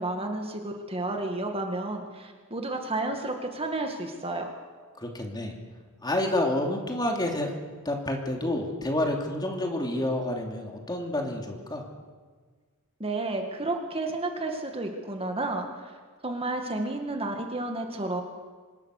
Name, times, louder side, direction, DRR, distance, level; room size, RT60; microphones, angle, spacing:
voice 1, 0.0-4.5 13.0-15.9 16.2-18.2, right 2 dB, 25° right, 4 dB, 2.1 m, -31 dB
voice 2, 5.0-5.5 6.0-7.5 7.8-11.8, left 1 dB, 20° left, 2 dB, 3.0 m, -29 dB
25.5 x 21.5 x 6.7 m, 1.5 s
head